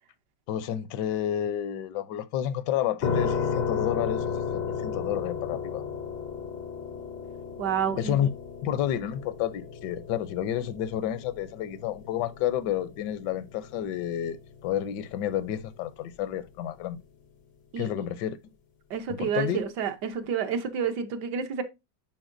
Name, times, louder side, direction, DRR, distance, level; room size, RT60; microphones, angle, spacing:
voice 1, 0.5-5.8 8.0-8.3 8.6-14.4 14.6-17.0 17.8-18.4 19.1-19.6, left 10 dB, 80° left, 1.2 m, -30 dB
sound 1, 3.0-15.9, left 6 dB, 60° left, 0.4 m, -34 dB
voice 2, 7.6-8.1 17.7-17.9 18.9-21.6, right 7 dB, 75° right, 1.4 m, -29 dB
10.0 x 4.3 x 2.5 m
omnidirectional pair, 1.9 m